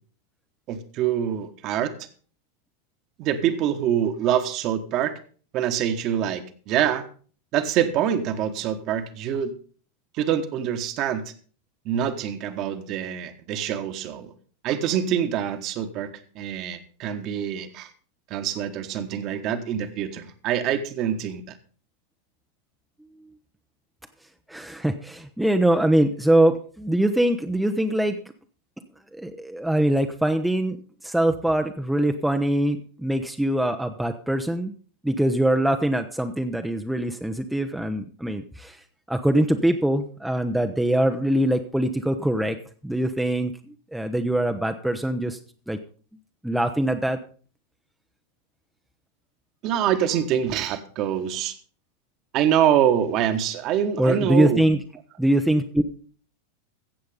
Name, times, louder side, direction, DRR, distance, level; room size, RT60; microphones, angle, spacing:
voice 1, 0.7-1.9 3.2-5.1 5.5-7.0 7.5-9.5 10.1-11.3 11.8-14.3 14.6-16.1 16.3-17.9 18.3-21.4 49.6-51.5 52.3-54.6, right 9 dB, 40° right, 9 dB, 1.4 m, -25 dB
voice 2, 24.5-28.2 29.1-30.8 31.0-34.7 35.0-38.8 39.1-42.6 42.8-45.4 45.7-45.8 46.4-47.2 54.0-54.8 55.2-55.8, right 1 dB, 5° right, 6 dB, 0.8 m, -23 dB
15.0 x 7.8 x 5.2 m, 0.42 s
figure-of-eight pair, 90°, 0 cm